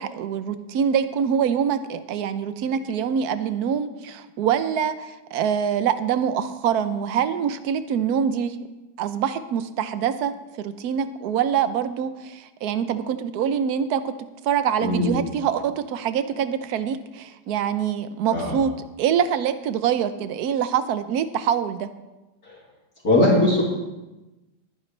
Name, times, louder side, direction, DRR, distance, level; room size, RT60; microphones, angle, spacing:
voice 1, 0.0-8.6 9.0-14.1 14.4-18.7 19.0-21.9, right 8 dB, 65° right, 11 dB, 1.1 m, -25 dB
voice 2, 14.8-15.2 18.3-18.6 22.4-22.6 23.0-23.6, left 2 dB, 45° left, -5 dB, 3.0 m, -20 dB
20.5 x 10.0 x 3.3 m, 1.1 s
omnidirectional pair, 2.2 m